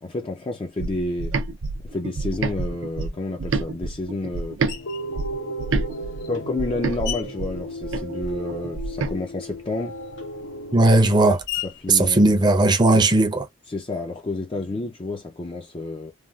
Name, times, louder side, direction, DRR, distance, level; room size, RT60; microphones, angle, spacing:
voice 1, 0.0-1.4 1.8-4.6 6.3-10.0 11.6-12.4 12.9-13.1 13.7-16.1, left 2 dB, 25° left, 0.4 m, -30 dB
sound 1, 0.8-4.8 5.1-9.1, right 3 dB, 70° right, 0.5 m, -28 dB
sound 2, 4.6-11.4, right 1 dB, 80° left, 0.8 m, -35 dB
Screech, 4.7-5.2 5.9-8.6 8.9-13.2, left 13 dB, 60° left, 1.2 m, -39 dB
voice 2, 10.7-11.4 11.9-13.4, right 2 dB, 20° right, 0.6 m, -17 dB
3.3 x 2.3 x 2.2 m
head